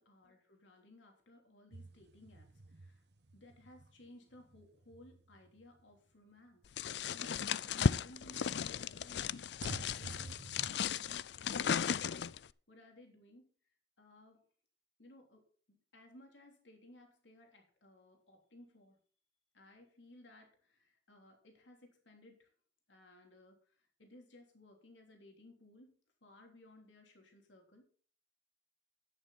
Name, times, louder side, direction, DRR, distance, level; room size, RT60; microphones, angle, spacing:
voice 1, 0.0-3.0 3.3-6.7 7.1-9.4 9.9-12.1 12.7-13.5 14.0-14.4 15.0-19.0 19.5-22.5 22.9-25.9 26.2-27.9, left 1 dB, 85° left, 3 dB, 3.3 m, -60 dB
sound 1, 1.7-6.0 6.6-6.7 9.6-10.7, right 2 dB, 65° right, 1.1 m, -51 dB
sound 2, 6.8-12.5, left 7 dB, 65° left, 0.4 m, -35 dB
11.5 x 10.0 x 4.2 m, 0.41 s
head